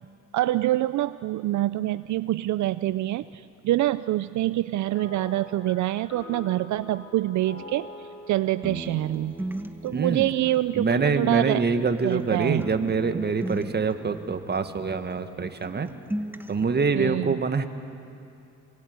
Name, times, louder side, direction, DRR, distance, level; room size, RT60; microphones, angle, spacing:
voice 1, 0.3-9.3 9.8-12.7 16.9-17.4, right 15 dB, 70° right, 14 dB, 0.6 m, -26 dB
sound 1, 4.9-10.5, left 2 dB, 50° left, 4.2 m, -45 dB
sound 2, 8.6-12.3 12.6-15.4 15.6-16.6, right 1 dB, 5° right, 1.3 m, -38 dB
voice 2, 9.9-10.3 10.8-15.9 16.5-17.7, right 4 dB, 35° right, 8 dB, 1.7 m, -25 dB
26.5 x 21.5 x 9.5 m, 2.6 s
cardioid pair, 90°, 30 cm